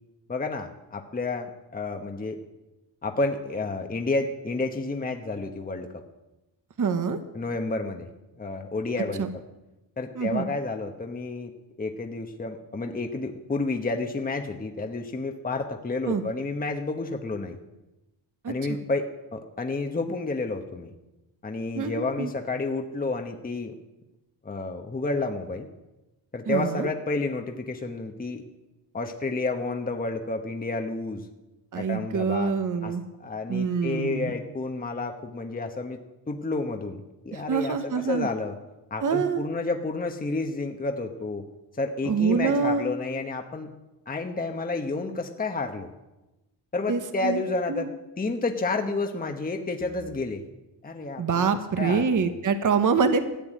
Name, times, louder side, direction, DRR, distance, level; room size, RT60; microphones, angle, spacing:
voice 1, 0.3-2.4 3.0-6.0 7.3-8.1 8.4-9.3 10.0-11.5 11.8-17.6 18.5-19.1 19.3-20.9 21.4-23.7 24.4-25.7 26.3-28.4 28.9-31.3 31.7-32.5 32.8-32.9 33.2-36.0 36.3-37.0 37.2-38.6 38.9-41.4 41.8-43.7 44.1-45.9 46.7-47.9 48.2-50.4 50.8-51.5 51.8-52.4, left 3 dB, 20° left, 4 dB, 1.1 m, -30 dB
voice 2, 6.8-7.2 9.2-9.3 10.1-10.5 16.1-16.2 18.4-18.5 21.7-22.3 26.5-26.9 31.7-33.0 33.5-34.3 37.3-38.3 39.0-39.4 42.0-42.9 46.9-47.4 47.7-47.9 51.2-53.2, right 5 dB, 40° right, 9 dB, 1.1 m, -25 dB
14.0 x 7.1 x 9.2 m, 1.0 s
cardioid pair, 100°, 48 cm